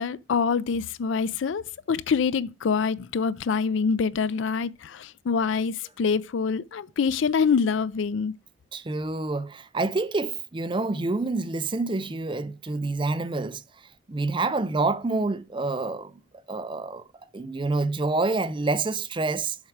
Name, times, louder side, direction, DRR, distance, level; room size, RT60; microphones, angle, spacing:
voice 1, 0.0-8.3, left 5 dB, 65° left, 0.4 m, -25 dB
voice 2, 8.7-13.6 14.1-16.1 16.5-17.0 17.3-19.6, right 3 dB, 25° right, 0.4 m, -27 dB
7.3 x 4.8 x 4.6 m
head